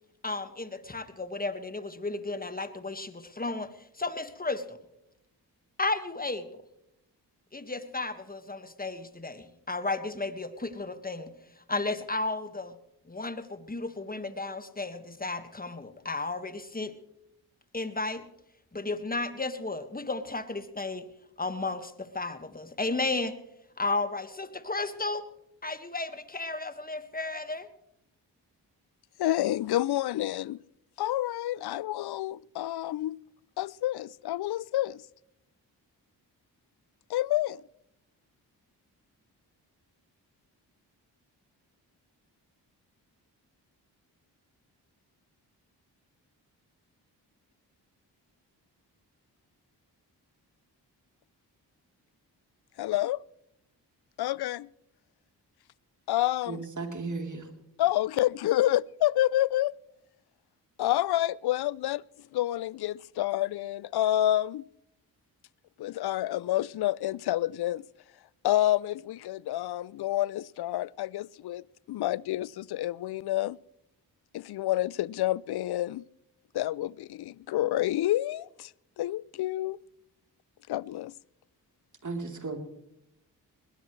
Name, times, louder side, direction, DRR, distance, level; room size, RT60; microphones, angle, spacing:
voice 1, 0.2-4.8 5.8-6.6 7.5-12.8 13.0-17.0 17.7-18.3 18.7-21.1 21.4-23.4 23.8-25.3 25.6-27.7, left 3 dB, 20° left, 1.7 m, -33 dB
voice 2, 29.2-30.6 31.0-33.2 33.6-35.0 37.1-37.6 52.8-53.2 54.2-54.7 56.1-56.6 57.8-59.7 60.8-62.0 62.3-64.6 65.8-67.8 68.4-73.6 74.3-76.0 76.5-78.7 79.0-79.8 80.7-81.1, left 14 dB, 60° left, 0.5 m, -28 dB
voice 3, 56.5-57.5 82.0-82.6, right 3 dB, 40° right, 3.5 m, -35 dB
21.0 x 18.5 x 3.2 m
supercardioid pair, 40°, 43 cm